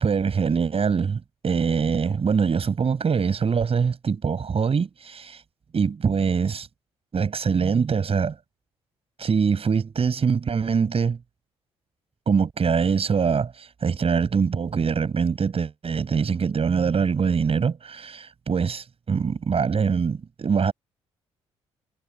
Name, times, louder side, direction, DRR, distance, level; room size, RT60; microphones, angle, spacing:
voice 1, 0.0-5.4 5.7-6.7 7.1-8.4 9.2-11.2 12.3-20.7, right 6 dB, 40° right, 7.1 m, -23 dB
figure-of-eight pair, 45°, 15 cm